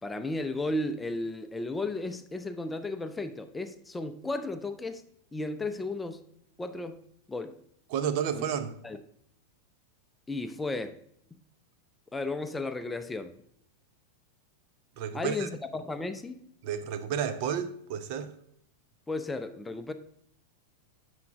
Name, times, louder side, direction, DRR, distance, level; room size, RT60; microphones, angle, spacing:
voice 1, 0.0-5.0 5.3-6.2 6.6-7.0 7.3-7.6 8.4-8.5 8.8-9.0 10.3-11.0 12.1-13.3 15.1-16.4 19.1-19.9, left 2 dB, 10° left, 0.5 m, -34 dB
voice 2, 7.9-8.7 15.0-15.5 16.6-18.3, right 8 dB, 45° right, 0.7 m, -31 dB
8.3 x 6.1 x 3.7 m
figure-of-eight pair, 90°, 0 cm